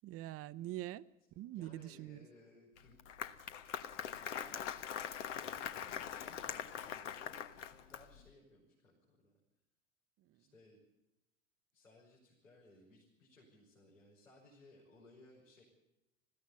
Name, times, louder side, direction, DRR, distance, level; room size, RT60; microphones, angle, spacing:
voice 1, 0.0-1.0 1.4-2.3 10.3-10.4, right 15 dB, 35° right, 0.8 m, -44 dB
voice 2, 1.5-3.0 4.3-9.3 10.3-10.8 11.7-15.6, left 2 dB, 85° left, 6.1 m, -63 dB
Applause, 2.8-8.3, left 9 dB, 65° left, 1.3 m, -43 dB
21.0 x 16.0 x 8.3 m
figure-of-eight pair, 80°, 39 cm